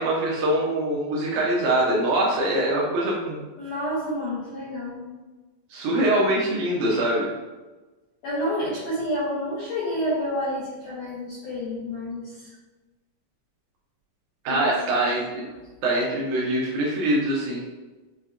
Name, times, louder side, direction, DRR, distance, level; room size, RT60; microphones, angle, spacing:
voice 1, 0.0-3.4 5.7-7.3 14.5-15.4 15.8-17.6, right 1 dB, 75° right, -4 dB, 1.9 m, -23 dB
voice 2, 3.6-5.1 8.2-12.5 14.5-15.0 15.5-15.6, equal, 75° left, -8 dB, 1.5 m, -29 dB
6.5 x 2.2 x 2.4 m, 1.2 s
omnidirectional pair, 3.9 m